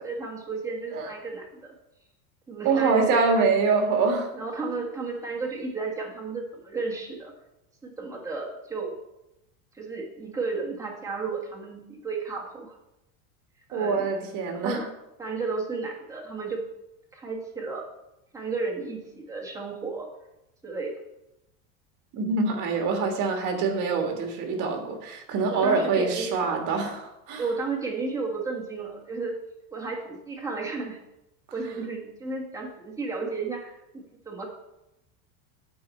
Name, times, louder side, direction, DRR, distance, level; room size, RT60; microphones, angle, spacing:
voice 1, 0.0-1.7 2.5-3.5 4.3-7.3 7.8-8.9 9.7-12.7 13.7-14.1 14.5-14.8 15.2-16.6 17.1-17.8 18.3-20.1 20.6-20.9 25.5-26.6 27.4-29.4 29.7-31.0 31.5-34.5, right 4 dB, 10° right, -1 dB, 1.5 m, -33 dB
voice 2, 2.6-4.3 4.6-4.8 13.7-14.9 22.1-27.4, right 4 dB, 45° right, 4 dB, 1.6 m, -25 dB
8.6 x 4.7 x 4.3 m, 0.90 s
supercardioid pair, 140°, 43 cm